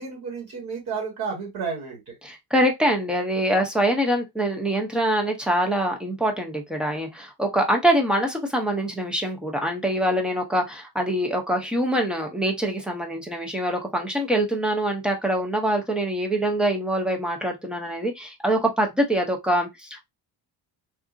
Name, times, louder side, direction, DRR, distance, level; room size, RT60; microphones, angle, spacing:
voice 1, 0.0-2.1, right 5 dB, 65° right, 1.6 m, -32 dB
voice 2, 2.2-20.1, right 1 dB, ahead, 0.4 m, -24 dB
3.7 x 2.4 x 2.4 m
cardioid pair, 175°, 40 cm